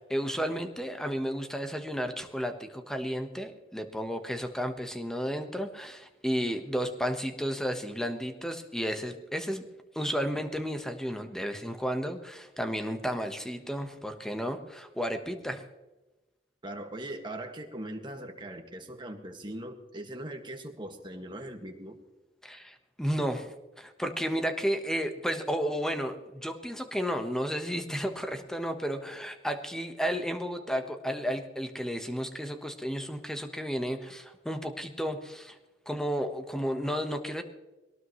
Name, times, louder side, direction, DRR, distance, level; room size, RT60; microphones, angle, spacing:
voice 1, 0.0-9.6 9.9-15.6 22.4-35.6 35.9-37.4, equal, 5° left, 6 dB, 1.2 m, -32 dB
voice 2, 16.6-22.0, right 1 dB, 25° right, 3 dB, 1.9 m, -40 dB
22.0 x 18.5 x 3.2 m, 1.1 s
head